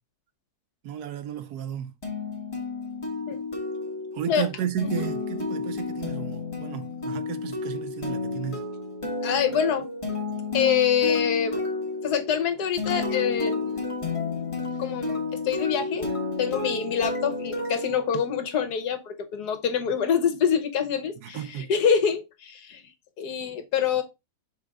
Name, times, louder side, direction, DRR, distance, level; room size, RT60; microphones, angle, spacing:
voice 1, 0.8-1.9 4.1-8.6 21.2-21.7, right 10 dB, 70° right, 1.1 m, -33 dB
sound 1, 2.0-18.7, left 3 dB, 20° left, 1.5 m, -31 dB
voice 2, 9.2-9.9 10.5-11.6 12.0-13.8 14.8-16.1 16.4-22.8 23.2-24.0, left 7 dB, 70° left, 1.5 m, -25 dB
6.5 x 4.0 x 3.6 m
omnidirectional pair, 1.8 m